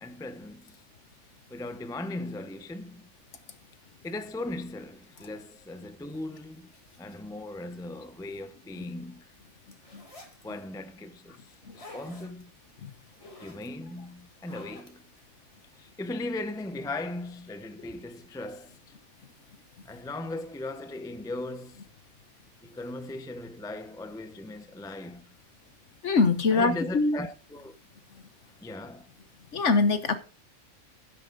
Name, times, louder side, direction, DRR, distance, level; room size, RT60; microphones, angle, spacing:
voice 1, 0.0-0.8 1.5-3.0 4.0-6.7 7.0-9.3 10.4-11.5 11.7-12.5 13.4-15.0 15.8-18.8 19.8-21.8 22.6-25.3 26.5-27.7 28.6-29.1, left 2 dB, 5° left, 0.6 m, -38 dB
sound 1, 9.7-10.4 11.5-12.4 12.9-13.7 14.2-15.2, left 1 dB, 25° left, 2.3 m, -49 dB
voice 2, 26.0-27.2 29.5-30.2, left 4 dB, 55° left, 1.4 m, -24 dB
12.0 x 10.5 x 3.9 m
omnidirectional pair, 1.5 m